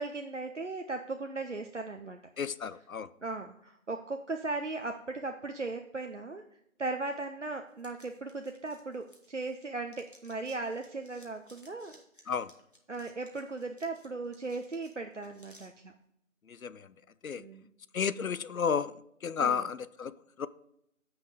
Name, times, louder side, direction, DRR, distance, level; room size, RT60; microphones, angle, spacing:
voice 1, 0.0-2.2 3.2-6.4 6.8-12.0 12.9-15.9 17.4-17.7 19.4-19.6, right 3 dB, 60° right, 0.6 m, -37 dB
voice 2, 2.4-3.1 12.3-12.5 16.5-16.9 17.2-17.4 17.9-20.5, left 6 dB, 80° left, 0.6 m, -32 dB
sound 1, 7.8-9.6 9.9-15.7, equal, 40° left, 1.3 m, -60 dB
7.5 x 5.9 x 4.8 m
figure-of-eight pair, 175°, 41 cm